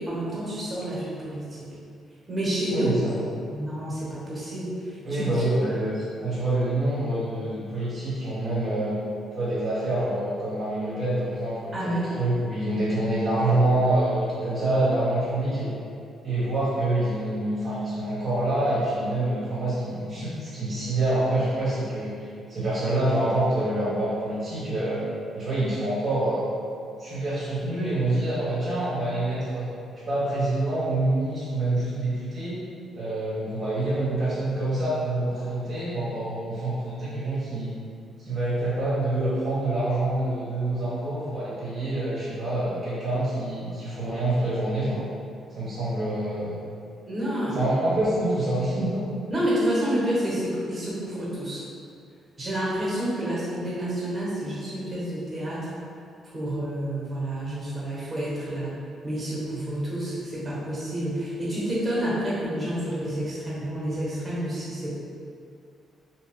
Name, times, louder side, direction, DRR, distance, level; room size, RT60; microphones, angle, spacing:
voice 1, 0.0-1.7 2.3-2.9 3.5-5.4 11.7-12.1 47.1-47.7 49.3-51.6 52.4-55.7 56.3-58.8 59.0-65.0, right 1 dB, 25° right, -7 dB, 1.1 m, -29 dB
voice 2, 2.7-3.2 5.0-9.0 9.3-15.7 16.2-22.1 22.5-25.0 25.3-26.4 27.0-29.7 30.1-32.6 32.9-37.7 38.2-45.0 45.5-46.6 47.6-49.1, right 1 dB, 45° right, -10 dB, 0.8 m, -26 dB
2.7 x 2.2 x 3.4 m, 2.4 s
cardioid pair, 90°, 0 cm